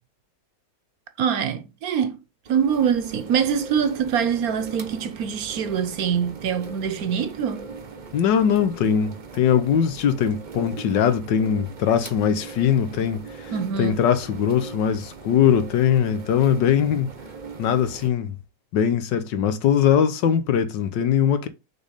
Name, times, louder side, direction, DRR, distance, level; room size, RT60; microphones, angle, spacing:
voice 1, 1.2-2.2 2.5-7.7 13.5-14.0, right 7 dB, 65° right, 1.1 m, -24 dB
sound 1, 2.5-18.1, right 5 dB, 40° right, 0.7 m, -40 dB
voice 2, 8.1-13.5 13.8-17.1 17.6-18.4 18.7-21.5, left 8 dB, 90° left, 1.6 m, -21 dB
6.3 x 3.5 x 5.0 m
omnidirectional pair, 1.9 m